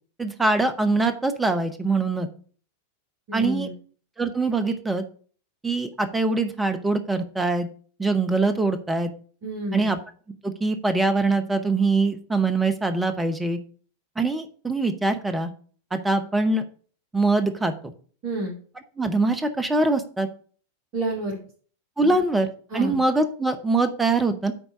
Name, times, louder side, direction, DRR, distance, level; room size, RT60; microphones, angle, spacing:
voice 1, 0.2-2.3 3.3-3.7 4.2-5.0 5.6-7.7 8.0-9.1 9.7-10.0 10.4-13.6 14.2-15.5 15.9-16.6 17.1-17.9 19.0-20.3 22.0-22.5 22.7-24.5, right 3 dB, 10° right, 9 dB, 1.1 m, -23 dB
voice 2, 3.3-3.7 9.4-9.9 18.2-18.6 20.9-21.4 22.0-22.1 22.7-23.0, right 1 dB, 40° right, -2 dB, 2.6 m, -29 dB
10.0 x 4.0 x 6.9 m, 0.43 s
figure-of-eight pair, 90°, 0 cm